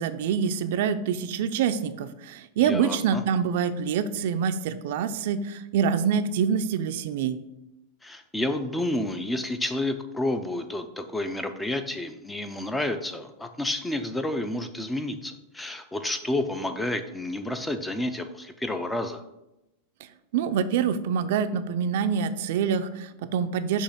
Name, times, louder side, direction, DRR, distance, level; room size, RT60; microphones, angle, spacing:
voice 1, 0.0-7.4 20.3-23.8, right 7 dB, 65° right, 10 dB, 0.4 m, -26 dB
voice 2, 2.6-3.2 8.0-19.2, left 1 dB, 5° left, 9 dB, 0.4 m, -30 dB
6.3 x 2.9 x 5.7 m, 0.92 s
supercardioid pair, 145°, 0 cm